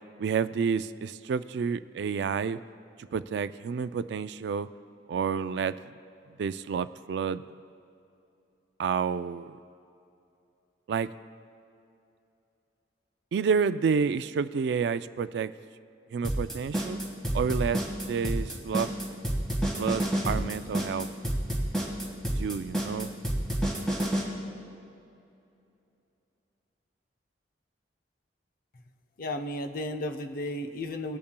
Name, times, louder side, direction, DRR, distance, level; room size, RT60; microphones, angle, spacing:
voice 1, 0.2-2.6 3.0-4.7 5.1-5.8 6.4-7.4 8.8-9.6 10.9-11.1 13.3-15.5 16.1-17.0 17.3-18.9 19.8-21.1 22.4-23.1, right 6 dB, 65° right, 13 dB, 0.3 m, -29 dB
sound 1, 16.2-24.2, right 1 dB, 5° left, 1.6 m, -28 dB
voice 2, 29.2-31.2, left 1 dB, 50° left, 7 dB, 0.6 m, -34 dB
20.0 x 8.5 x 2.2 m, 2.7 s
head